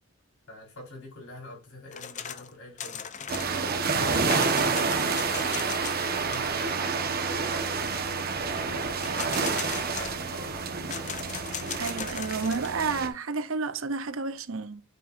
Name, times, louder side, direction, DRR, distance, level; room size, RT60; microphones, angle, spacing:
voice 1, 0.5-6.7 7.5-10.6, left 2 dB, 75° left, 4.8 m, -46 dB
sound 1, 1.9-2.5 2.8-6.1 6.3-6.4 9.0-10.4 10.9-12.8, left 8 dB, 35° left, 0.6 m, -38 dB
sound 2, 3.3-13.1, right 4 dB, 45° right, 1.2 m, -29 dB
voice 2, 11.8-14.8, right 4 dB, 65° right, 0.7 m, -31 dB
8.4 x 7.8 x 2.6 m
head